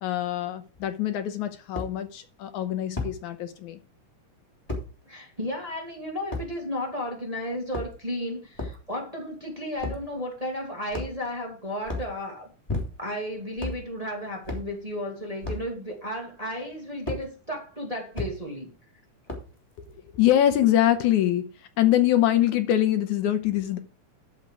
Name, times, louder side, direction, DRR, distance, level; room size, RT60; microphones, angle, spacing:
voice 1, 0.0-3.8 20.1-21.5 21.8-23.8, left 12 dB, 75° left, 2.3 m, -23 dB
sound 1, 0.7-0.8 1.7-1.9 3.0-3.2 4.7-4.9 6.3-6.5 7.6-8.1 8.5-8.8 9.8-10.0 10.9-11.3 11.8-12.1 12.7-13.1 13.6-13.8 14.4-14.7 15.4-15.7 17.1-17.2 18.1-18.3 19.3-19.6, left 2 dB, 10° left, 3.0 m, -32 dB
voice 2, 5.1-12.5 13.0-18.7, left 1 dB, 15° right, 1.8 m, -33 dB
12.5 x 5.6 x 4.8 m
omnidirectional pair, 3.6 m